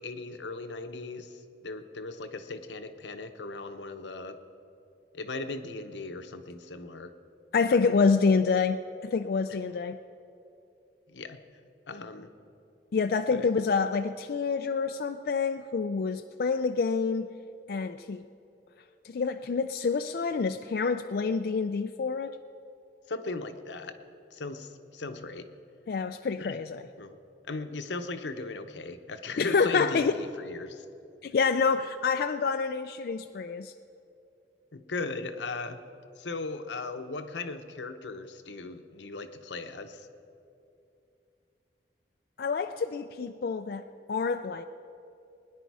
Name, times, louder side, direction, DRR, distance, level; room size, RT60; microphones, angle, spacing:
voice 1, 0.0-4.4 5.1-7.1 7.7-7.8 11.1-11.4 11.9-12.3 13.3-13.5 23.1-23.9 24.3-25.5 26.4-26.6 27.0-27.2 27.5-30.8 34.7-35.8 36.2-40.1, left 3 dB, 90° left, 8 dB, 0.8 m, -38 dB
voice 2, 7.5-10.0 12.9-17.3 17.7-18.2 19.0-22.4 25.9-26.9 29.4-30.1 31.2-33.7 42.4-43.8 44.1-44.6, left 5 dB, 60° left, 7 dB, 0.4 m, -27 dB
21.0 x 10.0 x 4.7 m, 2.7 s
head